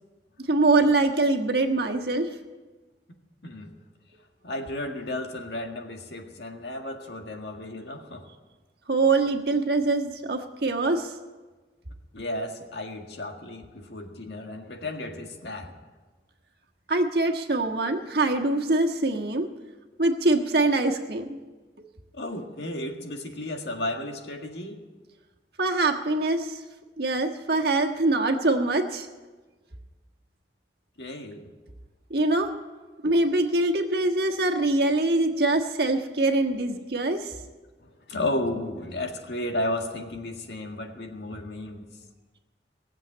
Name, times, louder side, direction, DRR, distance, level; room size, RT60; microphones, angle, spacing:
voice 1, 0.5-2.3 8.9-11.1 16.9-19.5 20.0-21.4 25.6-26.6 27.0-29.1 32.1-32.5 33.0-37.3, right 2 dB, 60° right, 3 dB, 1.5 m, -24 dB
voice 2, 3.4-3.7 4.4-8.3 12.1-15.7 22.2-24.8 31.0-31.5 37.8-41.8, left 1 dB, 70° left, 3 dB, 1.9 m, -33 dB
19.0 x 7.6 x 8.8 m, 1.3 s
head